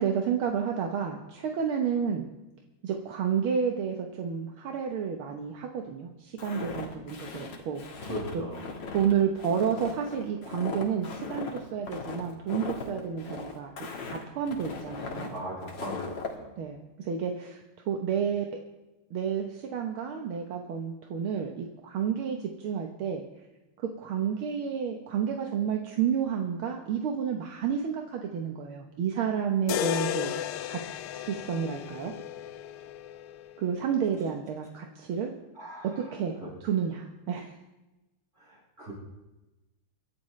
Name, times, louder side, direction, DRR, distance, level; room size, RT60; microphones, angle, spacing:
voice 1, 0.0-2.3 2.8-8.4 8.9-13.7 14.0-15.4 16.6-18.6 19.1-23.2 23.8-30.3 30.7-30.8 31.1-32.1 33.6-35.3 36.0-37.5, right 7 dB, 75° right, 3 dB, 1.9 m, -30 dB
Walk footsteps, 6.4-16.3, left 4 dB, 60° left, 2.3 m, -38 dB
voice 2, 8.1-8.7 15.3-16.6 35.6-36.1 38.4-38.9, right 1 dB, 30° right, -6 dB, 6.8 m, -39 dB
sound 1, 29.7-33.8, left 12 dB, 85° left, 1.5 m, -34 dB
24.0 x 11.5 x 3.2 m, 1.0 s
omnidirectional pair, 2.4 m